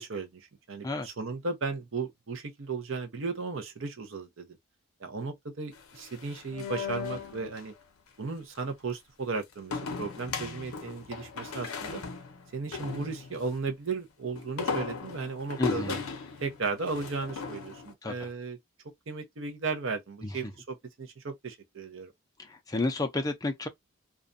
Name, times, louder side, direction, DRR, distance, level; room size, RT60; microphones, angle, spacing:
voice 1, 0.0-4.5 5.0-7.7 8.2-12.0 12.5-16.0 16.4-18.6 19.1-22.1, right 4 dB, 65° right, 0.6 m, -35 dB
sound 1, 5.8-7.7 9.7-13.5 14.4-17.9, left 5 dB, 85° left, 0.5 m, -37 dB
voice 2, 15.6-16.0 18.0-18.3 20.2-20.3 22.4-23.7, left 2 dB, 15° left, 0.4 m, -31 dB
2.4 x 2.2 x 2.5 m
head